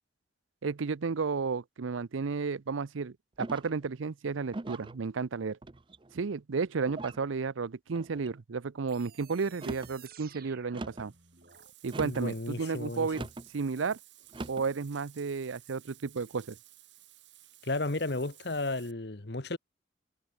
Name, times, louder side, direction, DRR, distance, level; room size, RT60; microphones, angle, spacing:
voice 1, 0.6-5.6 6.1-11.1 11.8-13.2 13.5-14.0 14.5-16.6, right 5 dB, 85° right, 0.6 m, -33 dB
sound 1, 3.4-3.9 4.5-5.0 5.6-6.1 6.9-7.3 7.9-8.3 9.5-10.0 10.7-11.1 11.9-12.3 13.1-13.5 14.3-14.7, right 2 dB, 25° right, 0.5 m, -41 dB
sound 2, 8.9-11.7, right 8 dB, 50° right, 7.0 m, -54 dB
Bathtub (filling or washing), 10.9-18.9, right 15 dB, 65° right, 4.1 m, -57 dB
voice 2, 12.0-13.3 17.6-19.6, left 2 dB, 55° left, 1.3 m, -33 dB
head